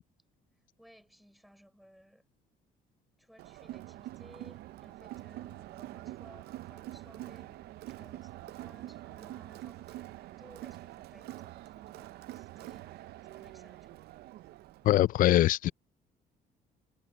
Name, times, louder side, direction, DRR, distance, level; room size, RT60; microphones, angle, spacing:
voice 1, 0.8-2.2 3.2-13.1 13.3-14.1, equal, ahead, 5.7 m, -59 dB
Crowd, 3.4-14.9, right 15 dB, 70° right, 0.5 m, -45 dB
voice 2, 14.8-15.7, left 14 dB, 55° left, 0.4 m, -23 dB
cardioid pair, 110°, 17 cm